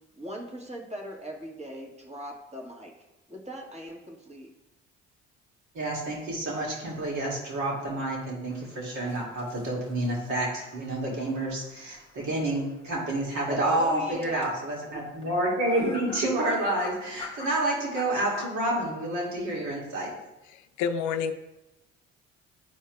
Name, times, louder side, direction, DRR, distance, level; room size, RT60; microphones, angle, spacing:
voice 1, 0.2-2.9 3.3-4.5 13.5-14.6 14.9-15.0, right 1 dB, 20° right, -1 dB, 1.7 m, -38 dB
voice 2, 5.7-20.1, right 1 dB, 60° right, -4 dB, 2.3 m, -29 dB
sound 1, 8.5-13.6 14.2-14.5 15.2-15.3 15.7-18.5, left 4 dB, 20° left, 1.5 m, -44 dB
voice 3, 20.5-21.3, left 6 dB, 60° left, 8 dB, 0.6 m, -29 dB
11.5 x 4.5 x 2.3 m, 0.96 s
hypercardioid pair, 55°, 33 cm